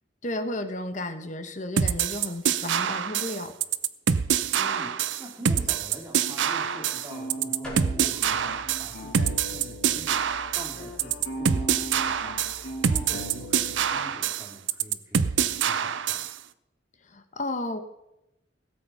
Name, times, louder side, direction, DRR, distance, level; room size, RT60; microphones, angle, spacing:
voice 1, 0.2-3.5 17.1-17.8, left 1 dB, 40° left, 8 dB, 1.2 m, -33 dB
sound 1, 1.8-16.4, right 8 dB, 80° right, 0.6 m, -26 dB
voice 2, 4.5-10.2 10.5-16.3, equal, 15° right, 0 dB, 2.6 m, -44 dB
sound 2, 6.1-10.0 10.3-14.1, equal, 85° left, 2.3 m, -39 dB
sound 3, 7.6-13.8, equal, 5° left, 4.7 m, -46 dB
17.0 x 7.8 x 5.6 m, 0.89 s
head